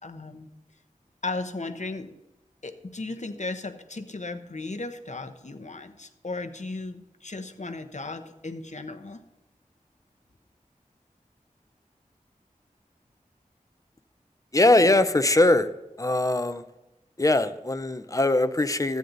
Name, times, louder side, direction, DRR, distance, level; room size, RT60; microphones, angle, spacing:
voice 1, 0.0-0.5 1.2-2.1 2.6-9.2, left 3 dB, 55° left, 7 dB, 1.0 m, -36 dB
voice 2, 14.5-15.7 16.0-16.6 17.2-19.0, left 2 dB, 25° left, 11 dB, 0.6 m, -21 dB
14.0 x 9.3 x 4.0 m, 0.95 s
wide cardioid pair, 50°, 14 cm